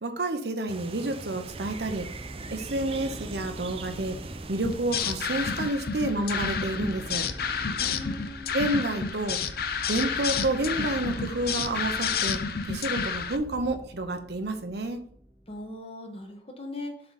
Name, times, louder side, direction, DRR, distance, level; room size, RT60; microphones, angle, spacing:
voice 1, 0.0-2.1 2.5-4.2 4.5-7.3 8.5-9.4 9.9-12.4 12.6-15.0, right 2 dB, 65° right, 7 dB, 0.8 m, -29 dB
sound 1, 0.7-5.7, right 4 dB, 30° right, 0.4 m, -41 dB
sound 2, 1.4-15.7, equal, 10° right, 0.9 m, -44 dB
sound 3, 4.6-13.4, left 6 dB, 55° left, 0.5 m, -30 dB
voice 2, 7.8-8.5 15.5-17.0, left 2 dB, 35° left, 3 dB, 1.2 m, -39 dB
7.3 x 4.0 x 4.9 m, 0.63 s
head